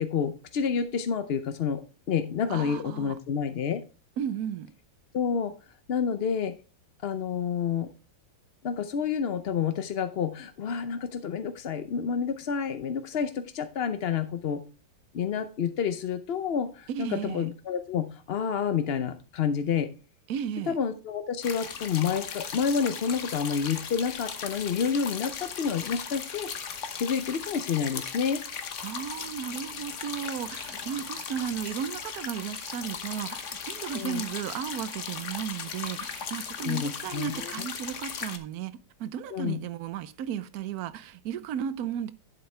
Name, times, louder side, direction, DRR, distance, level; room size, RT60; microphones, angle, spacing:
voice 1, 0.0-1.8 2.1-3.8 5.1-5.5 5.9-6.5 7.0-7.9 8.6-14.6 15.1-19.9 20.7-26.5 27.0-28.4 33.9-34.2 36.6-37.7 39.3-39.6, left 7 dB, 70° left, 0.5 m, -29 dB
voice 2, 2.5-3.1 4.2-4.7 16.9-17.5 20.3-20.8 28.8-42.1, right 9 dB, 65° right, 1.1 m, -34 dB
sound 1, 21.4-38.4, left 6 dB, 50° left, 1.2 m, -37 dB
11.0 x 8.0 x 3.2 m
omnidirectional pair, 1.9 m